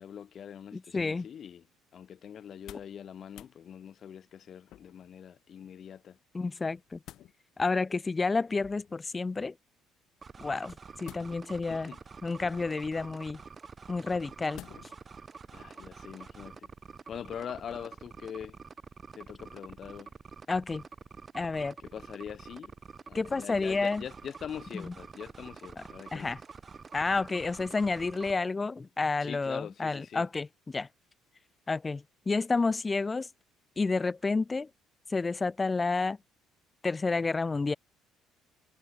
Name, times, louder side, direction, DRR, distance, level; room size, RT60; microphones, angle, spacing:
voice 1, 0.0-1.7 1.9-6.2 11.7-12.0 15.5-16.7 17.1-18.6 19.1-20.1 21.8-22.7 23.1-26.5 29.2-30.3, left 8 dB, 40° left, 1.9 m, -43 dB
voice 2, 0.7-1.3 6.3-7.0 7.6-9.5 10.4-11.9 12.2-13.4 13.9-14.6 20.5-20.8 21.3-21.7 23.1-24.0 26.1-26.4 26.9-30.9 31.7-33.3 33.8-34.7 35.1-36.2 36.8-37.7, left 3 dB, 15° left, 0.4 m, -30 dB
sound 1, 2.5-3.0 3.3-3.6 4.7-5.1 6.6-7.3 8.5-9.0 11.0-11.7 12.4-12.9 14.5-15.0 15.5-15.6, left 13 dB, 55° left, 1.3 m, -50 dB
sound 2, 10.2-28.3, right 5 dB, 25° right, 2.5 m, -48 dB
cardioid pair, 150°, 0 cm